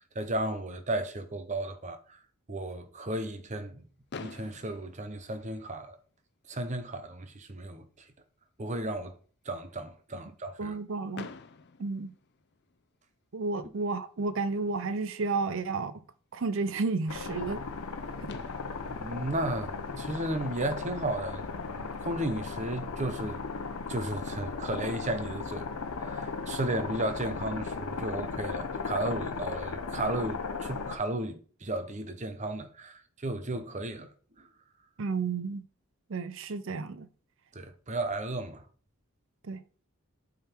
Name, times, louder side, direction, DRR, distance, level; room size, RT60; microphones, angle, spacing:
voice 1, 0.1-2.2 2.5-3.9 4.2-6.0 6.5-8.1 8.6-9.2 9.4-10.8 18.9-23.4 23.9-25.7 26.0-34.1 34.4-34.5 37.5-38.6, right 1 dB, 35° right, 0.9 m, -34 dB
Fireworks, 4.1-6.1 6.9-7.0 7.2-7.4 7.7-7.8 11.1-13.0 14.7-14.8 17.8-17.9 18.3-20.6, left 4 dB, 50° left, 0.6 m, -48 dB
voice 2, 10.6-11.3 11.8-12.1 13.3-16.0 16.3-17.6 18.2-18.3 35.0-35.6 36.1-37.1 39.4-39.6, right 4 dB, 60° right, 0.6 m, -32 dB
sound 1, 17.1-31.0, left 4 dB, 90° left, 0.8 m, -36 dB
8.5 x 3.9 x 4.5 m
head